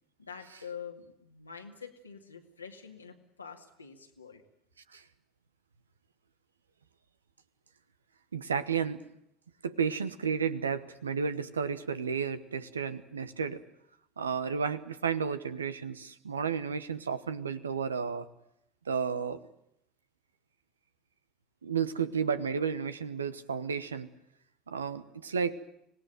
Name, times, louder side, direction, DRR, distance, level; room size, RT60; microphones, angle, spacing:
voice 1, 0.2-4.4, left 6 dB, 90° left, 4 dB, 2.2 m, -46 dB
voice 2, 8.3-9.0 9.6-13.6 14.2-18.3 18.9-19.4 21.6-24.1 24.7-25.6, right 6 dB, 85° right, 13 dB, 1.1 m, -32 dB
26.0 x 18.0 x 9.2 m, 0.77 s
figure-of-eight pair, 65°, 0 cm